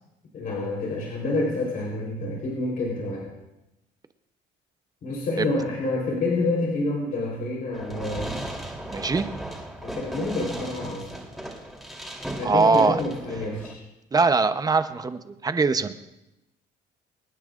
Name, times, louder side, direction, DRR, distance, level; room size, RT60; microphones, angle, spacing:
voice 1, 0.3-3.3 5.0-8.3 9.8-11.1 12.4-13.8, left 2 dB, 60° left, -4 dB, 3.8 m, -28 dB
Fireworks, 7.7-13.7, right 1 dB, ahead, 3.3 m, -36 dB
voice 2, 8.9-9.2 12.4-13.0 14.1-15.9, right 4 dB, 20° right, 10 dB, 0.8 m, -22 dB
26.0 x 10.0 x 2.5 m, 0.93 s
cardioid pair, 110°, 17 cm